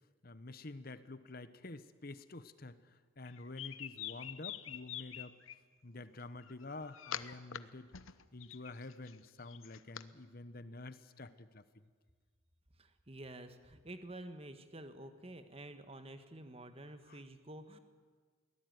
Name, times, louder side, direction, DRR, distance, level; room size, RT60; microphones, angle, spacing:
voice 1, 0.2-5.4 5.8-7.9 8.3-11.6 17.1-17.2, left 2 dB, 45° left, 13 dB, 1.1 m, -48 dB
sound 1, 3.3-5.6 6.4-7.6 7.9-10.0, left 10 dB, 85° left, 0.9 m, -45 dB
voice 2, 12.8-17.8, right 1 dB, 30° right, 9 dB, 1.4 m, -50 dB
23.0 x 18.0 x 9.5 m, 1.5 s
head